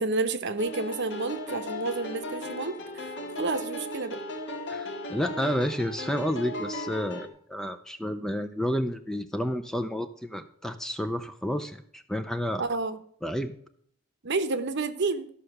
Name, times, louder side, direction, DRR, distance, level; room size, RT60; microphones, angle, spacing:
voice 1, 0.0-4.2 12.6-13.0 14.2-15.3, right 3 dB, 55° right, 10 dB, 0.9 m, -30 dB
sound 1, 0.6-7.3, left 1 dB, 55° left, 1.6 m, -36 dB
voice 2, 4.7-12.6 13.2-13.5, equal, ahead, 8 dB, 0.5 m, -30 dB
13.0 x 5.7 x 6.6 m, 0.62 s
head